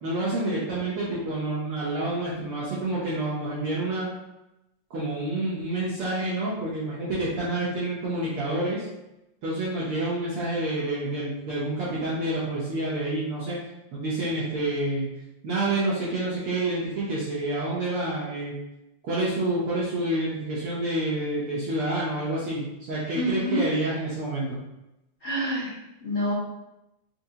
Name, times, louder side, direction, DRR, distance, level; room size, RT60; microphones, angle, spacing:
voice 1, 0.0-4.1 4.9-8.9 9.4-13.6 13.9-15.1 15.4-18.5 19.0-24.6, right 2 dB, 70° right, -7 dB, 1.3 m, -28 dB
voice 2, 23.1-23.6 25.2-25.7 26.0-26.3, equal, 60° left, -11 dB, 0.8 m, -27 dB
4.7 x 2.7 x 2.7 m, 0.91 s
omnidirectional pair, 3.3 m